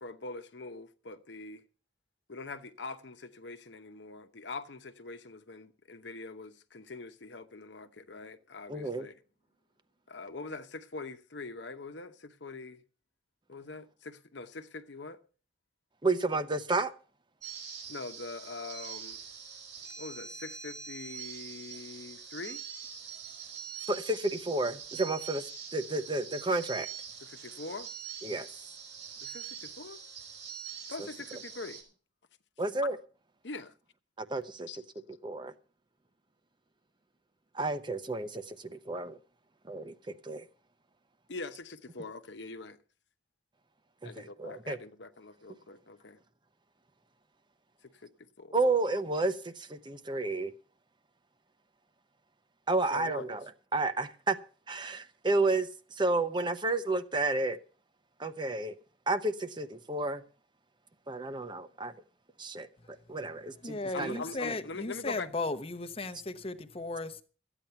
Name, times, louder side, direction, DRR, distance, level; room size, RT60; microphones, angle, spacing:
voice 1, 0.0-1.6 2.3-9.1 10.1-12.8 13.5-15.2 17.9-19.2 20.0-22.6 27.2-27.9 29.2-30.0 30.9-31.8 33.4-33.7 34.7-34.8 41.3-42.8 44.0-46.2 47.8-48.1 48.4-48.6 52.9-53.4 63.9-65.3, left 3 dB, 75° left, 1.0 m, -43 dB
voice 2, 8.7-9.1 16.0-16.9 23.9-25.4 25.7-26.9 28.2-28.5 32.6-33.0 34.2-34.8 35.2-35.5 37.5-39.2 39.6-40.5 44.0-44.8 48.5-50.5 52.7-53.4 53.7-54.4 54.7-57.6 58.2-58.7 59.1-60.2 61.1-61.9 62.4-62.7 63.1-64.2, right 2 dB, 25° right, 0.8 m, -31 dB
sound 1, 17.4-31.8, right 7 dB, 80° right, 4.5 m, -44 dB
voice 3, 63.6-67.2, left 2 dB, 30° left, 0.9 m, -36 dB
13.5 x 9.1 x 5.7 m
head